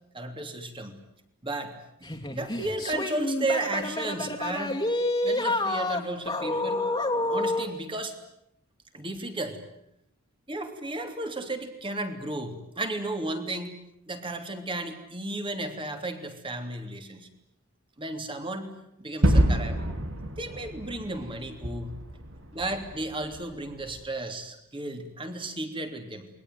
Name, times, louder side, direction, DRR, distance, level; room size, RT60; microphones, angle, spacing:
voice 1, 0.1-1.0 1.4-4.8 5.2-6.9 7.3-8.2 8.9-9.6 10.5-13.8 14.1-17.3 18.0-18.7 19.0-19.8 20.4-22.0 22.5-26.3, right 2 dB, 25° right, 6 dB, 3.2 m, -34 dB
sound 1, 2.0-7.7, left 2 dB, 20° left, 2.5 m, -28 dB
Gunshot gunfire / Fireworks / Boom, 19.2-24.0, right 1 dB, 60° right, 3.3 m, -28 dB
28.5 x 22.0 x 9.4 m, 0.79 s
head